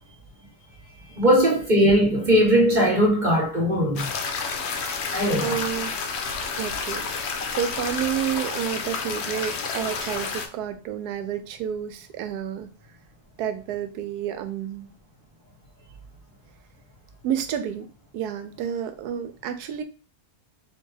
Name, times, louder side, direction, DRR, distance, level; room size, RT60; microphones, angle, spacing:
voice 1, 1.1-4.1 5.1-5.6, equal, 30° right, 1.2 m, -19 dB
sound 1, 4.0-10.5, left 5 dB, 60° left, 0.7 m, -30 dB
voice 2, 4.8-5.9 6.6-13.0 13.4-14.9 17.2-17.9 18.1-19.8, right 9 dB, 85° right, 1.1 m, -30 dB
4.3 x 2.8 x 3.3 m
omnidirectional pair, 1.7 m